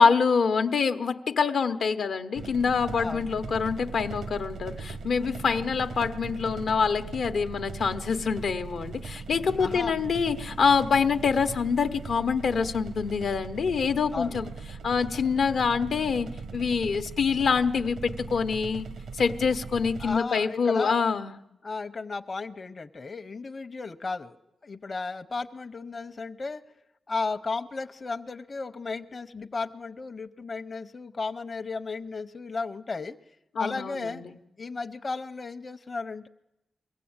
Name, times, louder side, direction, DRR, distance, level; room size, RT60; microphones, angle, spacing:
voice 1, 0.0-14.5 14.8-18.9 19.2-21.3 33.6-34.3, left 5 dB, 75° left, 8 dB, 0.8 m, -25 dB
sound 1, 2.3-20.2, right 4 dB, 85° right, 1.0 m, -39 dB
voice 2, 9.6-9.9 14.1-14.4 20.0-21.0 21.6-24.4 24.6-26.6 27.1-33.2 33.6-34.2 34.6-36.3, left 4 dB, 40° left, 8 dB, 0.7 m, -34 dB
23.0 x 16.0 x 8.7 m, 0.93 s
cardioid pair, 90°, 0 cm